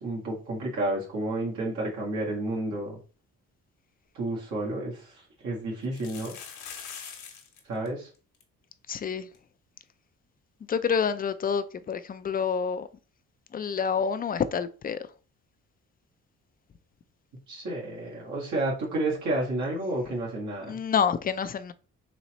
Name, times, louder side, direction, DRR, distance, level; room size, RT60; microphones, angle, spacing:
voice 1, 0.0-3.0 4.2-5.1 5.4-6.4 7.7-8.1 17.5-20.8, right 2 dB, 75° right, 1.7 m, -31 dB
sound 1, 4.2-4.3 4.6-4.7 5.8-7.6 7.9-8.0 8.1-8.4 9.0-9.1 9.3-9.4 11.5-11.6, left 7 dB, 80° left, 1.1 m, -43 dB
voice 2, 8.9-9.3 10.7-12.9 13.5-15.1 20.7-21.7, left 6 dB, 30° left, 0.4 m, -28 dB
4.1 x 3.1 x 3.0 m
cardioid pair, 90°, 30 cm